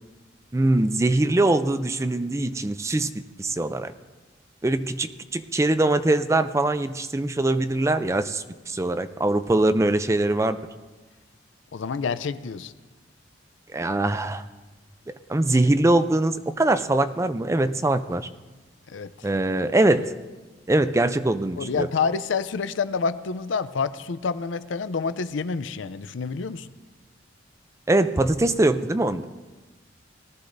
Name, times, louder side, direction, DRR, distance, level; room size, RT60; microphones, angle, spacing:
voice 1, 0.5-3.1 3.4-3.9 4.6-10.6 13.7-14.4 15.3-18.3 19.2-20.1 20.7-21.9 27.9-29.3, right 2 dB, 15° right, 11 dB, 0.4 m, -22 dB
voice 2, 11.7-12.7 18.9-19.3 21.6-26.7, left 5 dB, 85° left, 14 dB, 0.5 m, -28 dB
18.5 x 13.0 x 2.6 m, 1.2 s
head